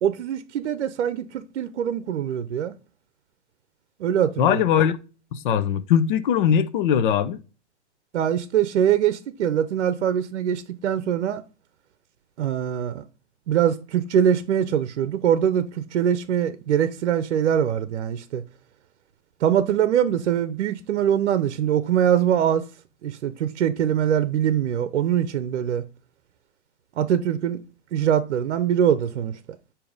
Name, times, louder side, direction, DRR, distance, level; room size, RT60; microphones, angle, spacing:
voice 1, 0.0-2.7 4.0-4.6 8.1-11.4 12.4-13.0 13.5-18.4 19.4-22.7 23.0-25.8 27.0-27.6 27.9-29.4, right 9 dB, 70° right, 0.7 m, -23 dB
voice 2, 4.4-5.0 5.3-7.4, left 8 dB, 45° left, 0.7 m, -20 dB
8.5 x 2.9 x 5.3 m
hypercardioid pair, 135°, 35 cm